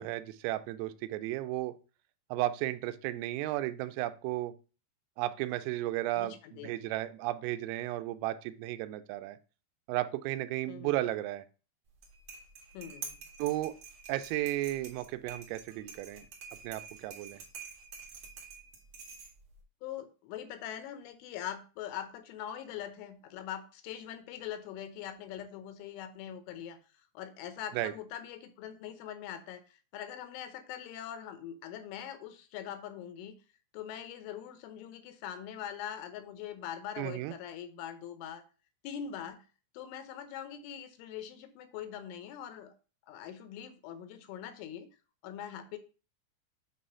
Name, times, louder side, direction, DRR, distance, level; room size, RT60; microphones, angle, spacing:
voice 1, 0.0-1.7 2.3-4.5 5.2-9.4 9.9-11.4 13.4-13.7 14.1-16.3 16.6-17.4 27.7-27.9 37.0-37.3, right 16 dB, 90° right, 11 dB, 3.3 m, -34 dB
voice 2, 6.2-6.8 10.7-11.0 12.7-13.2 19.8-26.8 27.1-33.4 33.7-38.4 38.8-39.5 39.7-42.7 43.1-44.9 45.2-45.8, left 10 dB, 80° left, 9 dB, 3.1 m, -42 dB
sound 1, 11.9-19.6, right 5 dB, 70° right, 1.5 m, -48 dB
8.5 x 3.1 x 5.5 m, 0.35 s
omnidirectional pair, 5.8 m